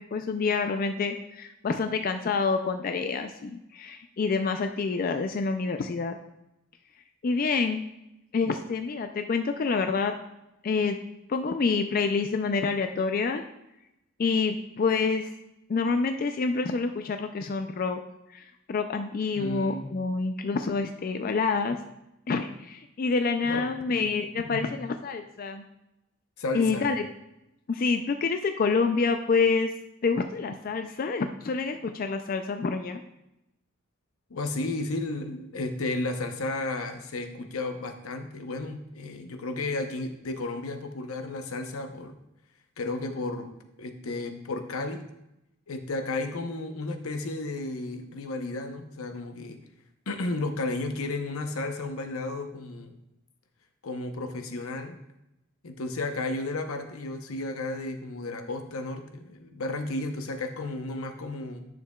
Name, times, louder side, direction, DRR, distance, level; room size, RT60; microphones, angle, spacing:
voice 1, 0.0-6.2 7.2-7.8 8.3-10.1 10.6-11.0 11.3-13.4 14.2-15.3 15.7-18.0 18.3-21.8 22.3-25.6 26.5-27.1 27.7-29.7 30.0-33.0, left 4 dB, 40° left, 7 dB, 0.3 m, -27 dB
voice 2, 19.3-19.9 23.4-23.6 24.5-24.6 26.4-26.9 34.3-42.1 42.8-43.5 43.8-45.1 45.7-49.6 50.1-52.9 53.8-55.0 55.6-61.7, left 2 dB, 85° left, 6 dB, 0.8 m, -33 dB
10.0 x 6.5 x 2.3 m, 0.88 s
head